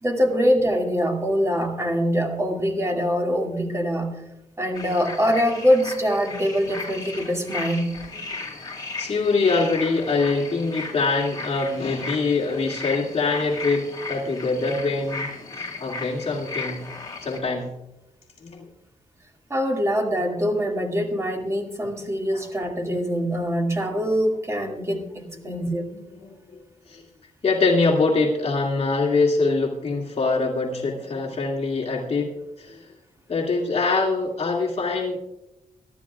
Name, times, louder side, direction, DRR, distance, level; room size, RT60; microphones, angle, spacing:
voice 1, 0.0-4.2 4.6-7.9 19.5-25.8, equal, 20° right, 1 dB, 2.1 m, -24 dB
sound 1, 4.7-17.4, left 3 dB, 30° left, 3.2 m, -35 dB
voice 2, 8.8-15.3 15.6-16.9 17.2-17.7 18.4-18.7 22.3-22.5 25.4-25.7 26.2-26.6 26.9-27.0 27.4-32.3 32.6-32.9 33.3-35.2, left 3 dB, 50° left, -2 dB, 2.3 m, -24 dB
24.0 x 12.0 x 2.4 m, 0.92 s
wide cardioid pair, 135°, 14 cm